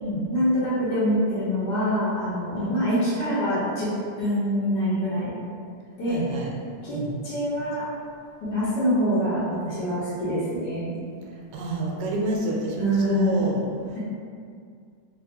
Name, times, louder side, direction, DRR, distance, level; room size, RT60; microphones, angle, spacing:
voice 1, 0.3-3.9 4.2-5.3 6.0-6.2 6.8-7.0 7.2-7.8 8.4-10.9 12.8-13.5, equal, 75° left, -10 dB, 1.4 m, -25 dB
voice 2, 6.1-6.5 6.9-7.1 11.5-13.6, right 1 dB, 85° right, -2 dB, 1.2 m, -28 dB
3.3 x 2.3 x 2.6 m, 2.2 s
omnidirectional pair, 1.9 m